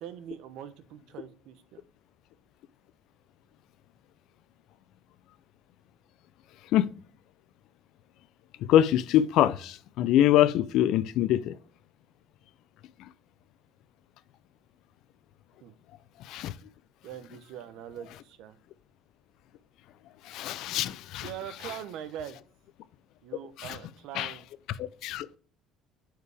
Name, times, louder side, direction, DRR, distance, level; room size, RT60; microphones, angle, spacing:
voice 1, 0.0-1.8 15.6-15.7 17.0-18.6 21.2-22.4 23.2-24.4, right 10 dB, 70° right, 0.8 m, -42 dB
voice 2, 8.7-11.5 16.3-16.5 20.3-21.3 23.6-23.8 24.1-24.3 24.8-25.3, left 12 dB, 65° left, 0.4 m, -24 dB
8.2 x 4.7 x 3.4 m
cardioid pair, 135°, 0 cm